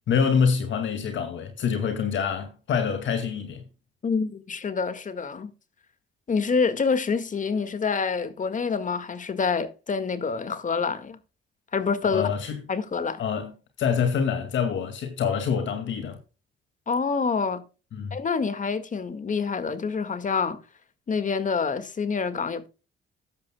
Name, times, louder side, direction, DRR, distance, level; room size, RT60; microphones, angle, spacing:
voice 1, 0.1-3.7 12.1-12.6 13.2-13.5 13.8-16.2 17.9-18.2, left 6 dB, 70° left, 2.1 m, -26 dB
voice 2, 4.0-5.5 6.3-11.2 11.7-12.2 12.7-13.2 16.9-17.6 18.1-20.6 21.1-22.7, left 5 dB, 40° left, 1.8 m, -27 dB
14.0 x 10.5 x 2.2 m
cardioid pair, 90°, 20 cm